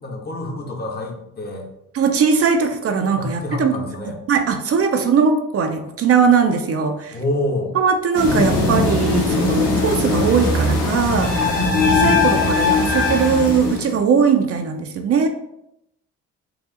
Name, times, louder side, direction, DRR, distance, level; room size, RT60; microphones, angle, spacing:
voice 1, 0.0-1.7 3.1-4.2 7.1-7.8 11.4-11.7, left 1 dB, 35° left, 1 dB, 1.0 m, -27 dB
voice 2, 1.9-3.7 4.3-7.2 7.7-11.3 11.9-15.3, right 6 dB, 50° right, 6 dB, 0.6 m, -19 dB
sound 1, 8.1-13.9, left 3 dB, 90° left, 1.5 m, -19 dB
4.8 x 2.4 x 3.7 m, 0.81 s
cardioid pair, 90°, 30 cm